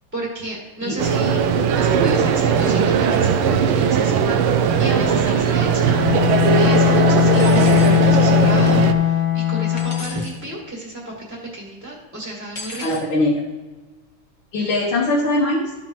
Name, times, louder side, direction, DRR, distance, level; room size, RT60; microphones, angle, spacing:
voice 1, 0.1-5.9 6.6-12.8, right 1 dB, 5° right, -3 dB, 1.3 m, -32 dB
sound 1, 1.0-8.9, right 6 dB, 80° right, 1.5 m, -18 dB
Bowed string instrument, 5.9-10.2, left 11 dB, 45° left, 0.9 m, -18 dB
sound 2, 7.3-8.0 9.8-10.4 12.5-13.0, left 2 dB, 25° left, 1.1 m, -36 dB
voice 2, 12.7-13.4 14.5-15.7, left 2 dB, 70° left, -6 dB, 2.1 m, -21 dB
13.5 x 5.8 x 3.0 m, 1.2 s
omnidirectional pair, 2.4 m